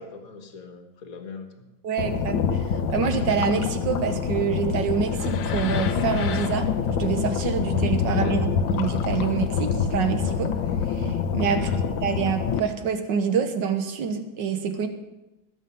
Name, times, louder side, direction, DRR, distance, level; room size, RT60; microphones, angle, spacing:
voice 1, 0.0-1.5 8.1-8.4 11.5-11.8, left 5 dB, 50° left, 5 dB, 1.8 m, -39 dB
voice 2, 1.8-2.4 2.9-10.5 11.0-11.7 12.0-14.9, right 7 dB, 70° right, 8 dB, 1.8 m, -26 dB
sound 1, 2.0-12.6, left 6 dB, 75° left, 1.6 m, -26 dB
20.0 x 7.8 x 5.5 m, 1.0 s
omnidirectional pair, 2.1 m